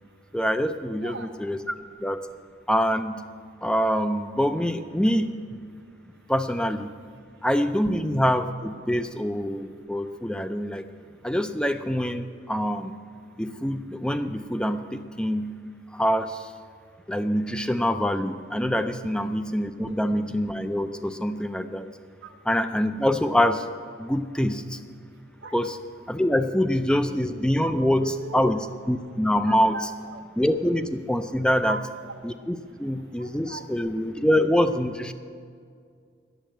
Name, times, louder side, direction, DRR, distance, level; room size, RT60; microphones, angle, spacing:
voice 1, 0.3-1.7 2.0-2.3 2.7-3.3 3.6-5.4 6.3-6.9 7.4-10.9 11.2-13.0 13.4-15.6 15.9-16.5 17.1-21.9 22.5-23.7 24.0-24.8 25.5-25.8 26.1-29.9 30.4-31.8 32.2-35.1, equal, 5° left, 10 dB, 0.4 m, -25 dB
voice 2, 0.9-1.3 22.2-22.4 25.4-25.5 27.7-28.5 29.4-30.2 31.6-32.1 33.2-33.7, right 3 dB, 60° right, 1 dB, 0.5 m, -37 dB
10.5 x 7.5 x 9.0 m, 2.2 s
head